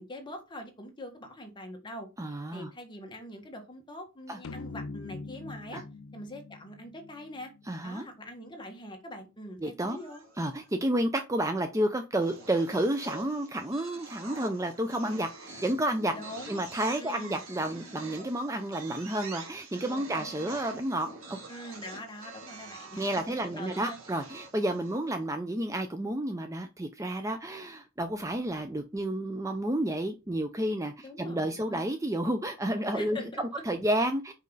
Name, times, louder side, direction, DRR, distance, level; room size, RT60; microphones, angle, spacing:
voice 1, 0.0-2.1 2.5-5.8 6.1-7.5 7.8-10.2 16.1-16.6 17.0-17.4 19.8-20.8 21.5-24.0 31.0-32.0 32.9-33.6, left 1 dB, 20° left, 1.5 m, -43 dB
voice 2, 2.2-2.7 4.3-4.4 5.7-5.8 7.7-8.1 9.6-10.0 10.4-16.1 16.5-21.4 23.0-33.2 33.7-34.3, right 1 dB, 15° right, 0.5 m, -31 dB
sound 1, 4.4-7.9, left 3 dB, 70° left, 0.5 m, -43 dB
sound 2, 9.9-10.7 12.2-25.2, right 3 dB, 70° right, 2.5 m, -47 dB
5.3 x 5.2 x 3.9 m
head